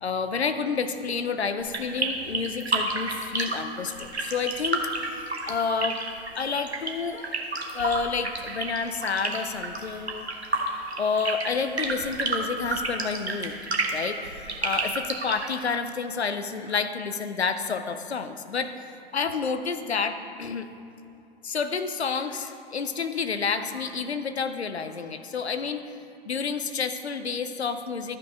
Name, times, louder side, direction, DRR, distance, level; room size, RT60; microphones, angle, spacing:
voice 1, 0.0-4.8 5.4-6.0 6.4-7.5 7.7-10.3 10.7-13.6 13.9-18.7 19.1-20.7 21.4-25.8 26.3-28.2, left 5 dB, 85° left, 10 dB, 0.7 m, -29 dB
sound 1, 1.6-15.5, right 3 dB, 90° right, 1.2 m, -30 dB
12.5 x 5.9 x 5.0 m, 2.8 s
figure-of-eight pair, 105°, 31 cm